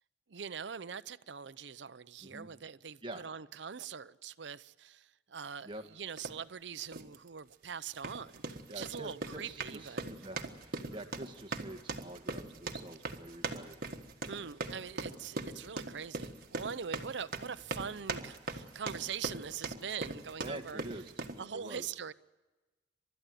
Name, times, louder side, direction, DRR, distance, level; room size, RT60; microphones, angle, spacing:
voice 1, 0.3-10.1 10.8-11.0 14.3-20.8 21.4-22.1, right 7 dB, 70° right, 0.7 m, -43 dB
sound 1, 6.2-6.4 6.9-7.2 7.9-21.4, right 3 dB, 55° right, 1.6 m, -40 dB
voice 2, 8.7-13.8 20.4-21.9, right 1 dB, 25° right, 1.7 m, -46 dB
29.5 x 13.0 x 9.3 m
head